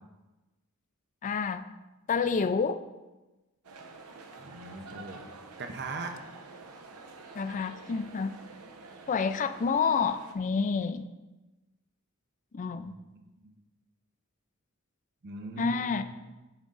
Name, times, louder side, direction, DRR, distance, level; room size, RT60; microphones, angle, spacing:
voice 1, 1.2-1.7 2.1-2.8 7.3-8.3 9.1-11.0 12.5-12.9 15.6-16.0, left 5 dB, 35° left, 10 dB, 0.3 m, -28 dB
sound 1, 3.6-10.3, right 3 dB, 85° right, 0.7 m, -48 dB
voice 2, 4.4-5.3 5.6-6.1 12.7-13.5 15.2-16.0, right 3 dB, 50° right, 5 dB, 0.7 m, -40 dB
10.5 x 3.7 x 3.9 m, 1.1 s
head